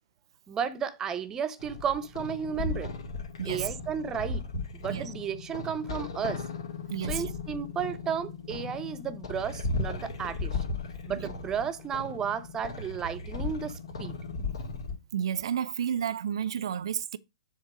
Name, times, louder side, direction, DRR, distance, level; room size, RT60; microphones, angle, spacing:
voice 1, 0.5-2.9 3.4-4.4 4.7-6.5 7.1-10.6 11.0-14.1, right 7 dB, 20° right, 0.7 m, -33 dB
sound 1, 1.6-15.0, left 3 dB, 70° left, 2.0 m, -36 dB
voice 2, 6.9-7.3 11.1-11.3 15.1-17.2, right 8 dB, 65° right, 0.5 m, -31 dB
7.3 x 3.8 x 4.9 m
hypercardioid pair, 130°, 3 cm